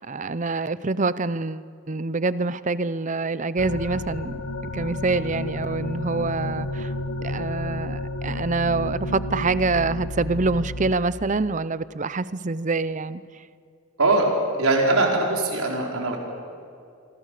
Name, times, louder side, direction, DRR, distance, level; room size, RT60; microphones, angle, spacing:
voice 1, 0.0-4.4 4.7-6.9 7.2-13.2, right 3 dB, 35° right, 16 dB, 0.6 m, -26 dB
sound 1, 3.6-10.9, left 2 dB, 80° left, 1.1 m, -31 dB
voice 2, 14.6-16.2, right 2 dB, 85° right, 0 dB, 5.1 m, -21 dB
26.5 x 24.5 x 6.7 m, 2.4 s
head